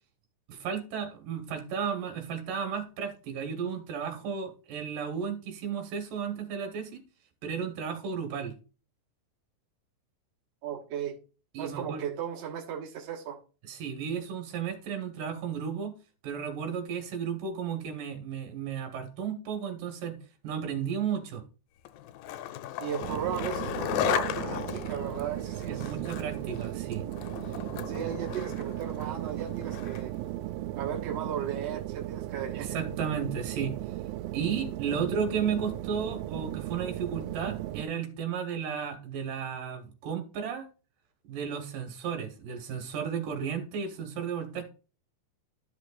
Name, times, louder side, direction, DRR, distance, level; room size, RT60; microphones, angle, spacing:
voice 1, 0.5-7.0 7.4-8.5 11.5-12.1 13.6-15.9 16.2-20.2 20.4-21.4 25.7-27.0 32.5-33.7 34.3-40.7 41.3-44.6, right 7 dB, 70° right, 5 dB, 3.0 m, -33 dB
voice 2, 10.6-11.2 11.6-13.4 22.8-25.9 27.9-30.1 30.8-32.8, right 8 dB, 55° right, -2 dB, 2.3 m, -36 dB
Skateboard, 21.9-30.2, left 12 dB, 85° left, 2.3 m, -36 dB
sound 1, 23.0-37.8, right 15 dB, 90° right, 2.3 m, -36 dB
12.5 x 6.1 x 2.4 m, 0.34 s
omnidirectional pair, 4.1 m